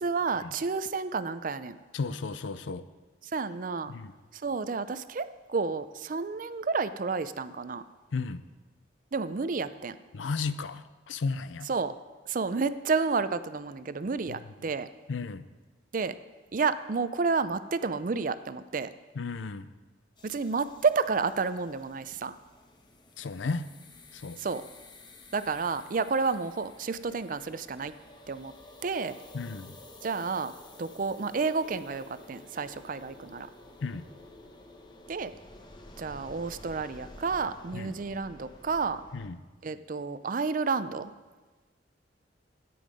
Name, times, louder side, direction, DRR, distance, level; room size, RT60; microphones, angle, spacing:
voice 1, 0.0-1.8 3.3-3.9 4.3-7.8 9.1-10.0 11.7-11.9 12.3-14.9 15.9-16.1 16.5-18.9 20.2-22.4 24.4-24.6 25.3-27.9 28.3-28.5 28.8-29.2 30.0-30.5 30.8-33.5 35.1-35.3 36.0-39.0 39.6-41.1, right 4 dB, 45° right, 13 dB, 0.4 m, -30 dB
voice 2, 1.9-2.9 3.9-4.1 8.1-8.4 10.1-11.7 14.3-14.4 15.1-15.5 19.1-19.7 23.2-23.7 24.1-24.4 29.3-29.8 33.8-34.1 37.7-37.9 39.1-39.4, left 4 dB, 80° left, 14 dB, 0.5 m, -34 dB
sound 1, 20.2-39.3, left 1 dB, 25° left, 0.9 m, -52 dB
13.5 x 9.4 x 5.1 m, 1.3 s
head